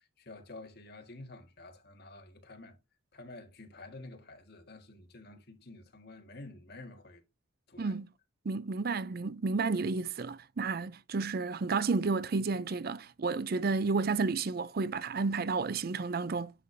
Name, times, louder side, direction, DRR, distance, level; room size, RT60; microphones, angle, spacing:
voice 1, 0.0-2.8 3.1-7.2 7.7-7.9, left 2 dB, 55° left, 1.8 m, -50 dB
voice 2, 7.8-8.1 8.5-16.5, right 4 dB, 50° right, 0.5 m, -31 dB
9.8 x 5.0 x 2.7 m
head